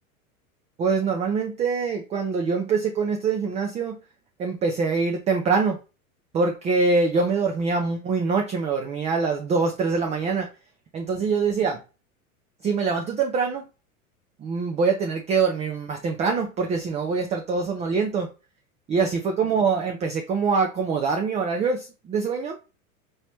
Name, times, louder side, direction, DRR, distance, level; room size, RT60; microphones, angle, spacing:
voice 1, 0.8-4.0 4.4-5.8 6.3-10.5 10.9-11.8 12.6-13.7 14.4-18.3 18.9-22.6, right 4 dB, 15° right, 3 dB, 0.5 m, -24 dB
4.6 x 3.0 x 3.0 m, 0.31 s
figure-of-eight pair, 90°, 43 cm